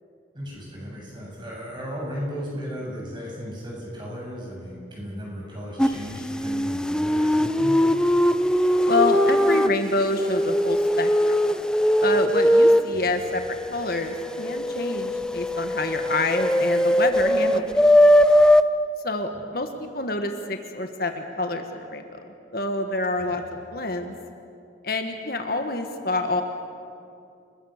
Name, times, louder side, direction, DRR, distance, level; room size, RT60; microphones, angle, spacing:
voice 1, 0.3-7.8 13.0-13.2 23.2-23.3, equal, 25° right, -3 dB, 7.9 m, -35 dB
sound 1, 5.8-5.9 6.2-9.7 10.0-12.8 13.2-18.6, equal, 5° left, 0.5 m, -20 dB
voice 2, 8.8-11.4 12.0-17.6 19.0-22.0 22.5-24.1 24.8-26.4, left 2 dB, 55° left, 5 dB, 1.6 m, -27 dB
30.0 x 21.0 x 6.7 m, 2.4 s
head